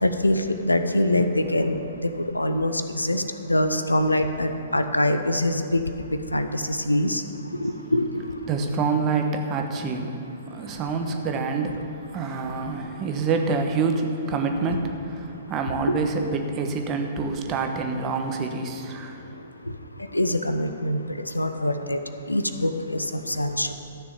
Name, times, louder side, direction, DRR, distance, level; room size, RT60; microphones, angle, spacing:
voice 1, 0.0-1.8 2.2-3.2 3.5-5.8 6.3-7.2 7.6-8.1 20.1-21.0 21.3-22.0 22.3-23.7, left 1 dB, 85° left, 8 dB, 0.8 m, -24 dB
voice 2, 8.5-19.4, right 4 dB, 25° right, 4 dB, 1.2 m, -27 dB
13.5 x 6.8 x 7.1 m, 2.6 s
figure-of-eight pair, 115°, 0 cm